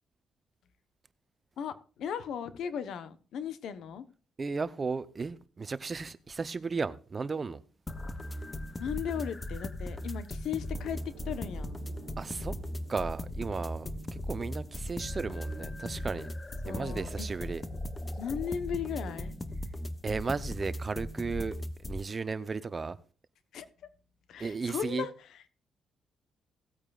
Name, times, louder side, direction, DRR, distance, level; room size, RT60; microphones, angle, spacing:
voice 1, 1.6-4.1 8.8-11.0 11.2-11.8 16.6-17.3 18.2-19.3 23.5-23.7 24.3-25.5, left 8 dB, 75° left, 1.0 m, -36 dB
voice 2, 4.4-7.6 12.2-12.5 12.9-13.9 14.3-16.3 16.7-17.6 20.0-21.6 21.8-23.0 24.4-25.0, right 4 dB, 30° right, 0.7 m, -34 dB
sound 1, 7.9-22.0, left 1 dB, 20° left, 0.9 m, -38 dB
sound 2, 10.7-15.8, right 7 dB, 75° right, 1.0 m, -52 dB
18.0 x 8.8 x 2.4 m
cardioid pair, 90°, 0 cm